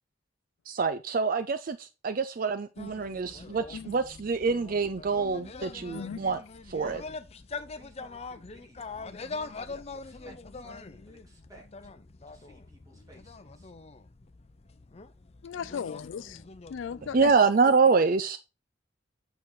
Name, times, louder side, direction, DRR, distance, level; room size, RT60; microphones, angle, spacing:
voice 1, 0.7-6.4 6.7-7.0 17.1-18.4, right 4 dB, 50° right, 0.5 m, -26 dB
sound 1, 2.8-17.4, left 3 dB, 35° left, 0.6 m, -43 dB
voice 2, 5.9-6.2 15.4-16.4 16.7-17.3, left 7 dB, 85° left, 0.4 m, -36 dB
voice 3, 7.4-11.9 12.3-13.7 15.5-16.0, right 1 dB, 20° right, 3.0 m, -57 dB
8.6 x 4.5 x 3.9 m
head